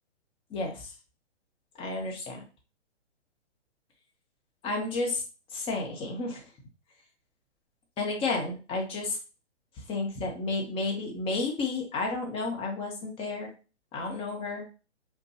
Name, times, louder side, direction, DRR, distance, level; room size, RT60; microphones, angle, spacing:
voice 1, 0.5-0.9 1.8-2.4 4.6-5.2 5.5-6.4 8.0-9.2 9.9-13.5 13.9-14.6, left 3 dB, 15° left, 0 dB, 0.9 m, -31 dB
5.1 x 2.3 x 2.8 m, 0.33 s
figure-of-eight pair, 125°, 35 cm